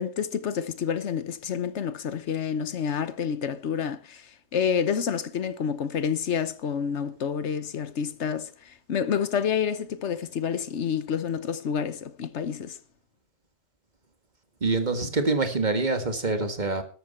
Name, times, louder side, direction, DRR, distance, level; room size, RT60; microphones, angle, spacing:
voice 1, 0.0-4.3 4.5-12.8, left 7 dB, 70° left, 1.2 m, -28 dB
voice 2, 14.6-16.8, right 3 dB, 40° right, 1.9 m, -25 dB
13.5 x 12.5 x 4.3 m
omnidirectional pair, 1.2 m